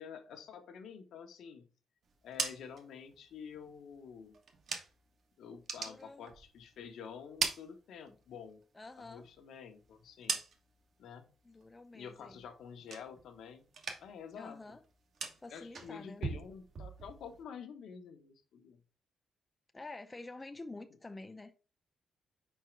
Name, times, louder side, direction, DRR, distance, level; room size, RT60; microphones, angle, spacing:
voice 1, 0.0-1.7 2.2-4.4 5.4-8.6 9.0-10.4 11.0-11.3 11.9-13.7 14.0-14.6 15.5-18.8, left 7 dB, 80° left, 1.1 m, -49 dB
sound 1, 2.1-5.2 5.5-6.8 7.1-8.4 8.8-10.9 11.3-11.8 12.1-13.4 13.7-14.3 14.6-17.4, right 5 dB, 55° right, 1.2 m, -42 dB
voice 2, 5.8-6.3 8.1-8.2 8.7-9.3 11.4-12.4 14.4-14.8 15.4-16.2 19.7-21.5, left 2 dB, 15° left, 0.5 m, -48 dB
5.0 x 4.5 x 4.5 m
cardioid pair, 130°, 0 cm